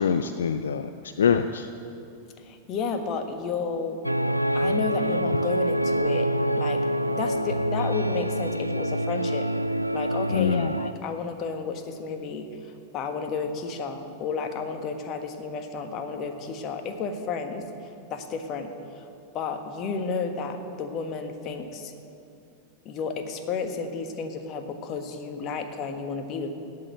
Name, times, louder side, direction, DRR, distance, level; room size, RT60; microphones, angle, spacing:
voice 1, 0.0-1.7 10.3-10.7, left 7 dB, 65° left, 10 dB, 0.4 m, -24 dB
voice 2, 2.4-4.0 4.5-6.3 6.5-9.5 9.9-19.1 19.3-21.9 22.8-26.5, left 5 dB, 35° left, 6 dB, 1.5 m, -32 dB
mo Opacity complete, 4.0-10.9, right 1 dB, 90° right, 0.3 m, -26 dB
17.0 x 6.7 x 9.4 m, 2.7 s
figure-of-eight pair, 90°, 0 cm